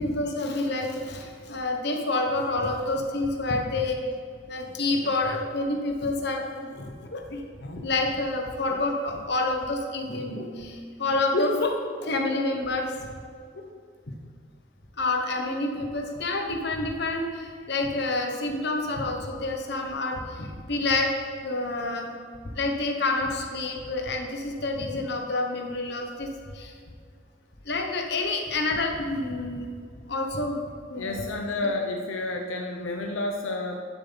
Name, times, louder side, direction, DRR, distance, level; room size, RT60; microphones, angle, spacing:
voice 1, 0.0-4.0 4.5-11.8 12.0-12.9 13.5-13.6 15.0-21.1 21.4-22.1 22.4-26.3 26.5-26.7 27.6-29.7 30.1-31.3, left 2 dB, 55° left, 2 dB, 1.2 m, -28 dB
voice 2, 31.0-33.8, left 2 dB, 85° left, 2 dB, 0.7 m, -30 dB
11.5 x 7.0 x 4.0 m, 2.1 s
head